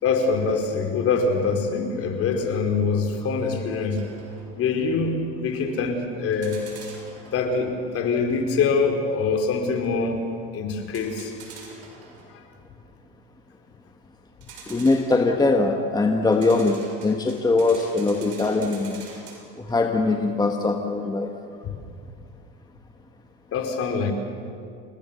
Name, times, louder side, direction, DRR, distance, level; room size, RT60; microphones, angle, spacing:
voice 1, 0.0-4.0 4.6-6.6 7.3-10.2 10.5-11.3 12.3-12.4 21.6-21.8 23.5-24.1, left 4 dB, 45° left, 4 dB, 4.3 m, -24 dB
sound 1, 3.9-4.5 6.3-7.6 10.8-12.4 14.4-15.4 16.2-19.9, right 4 dB, 50° right, 7.3 m, -45 dB
voice 2, 14.7-19.0 19.6-21.3, left 3 dB, 15° left, 3 dB, 1.6 m, -22 dB
29.0 x 19.0 x 7.1 m, 2.4 s
supercardioid pair, 105°, 31 cm